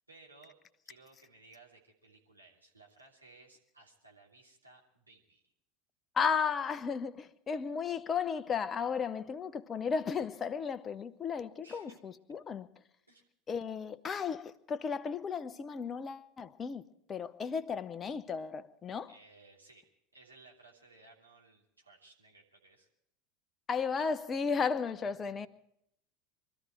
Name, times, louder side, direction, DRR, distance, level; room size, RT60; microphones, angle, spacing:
voice 1, 0.1-0.5 0.8-5.5 11.6-12.0 13.1-13.2 19.1-19.8 20.1-22.9 25.2-25.5, right 3 dB, 85° right, 2.8 m, -59 dB
voice 2, 6.1-12.7 13.5-16.8 17.1-19.1 23.7-25.5, left 6 dB, 25° left, 0.8 m, -34 dB
23.5 x 13.5 x 4.6 m
figure-of-eight pair, 80°, 0 cm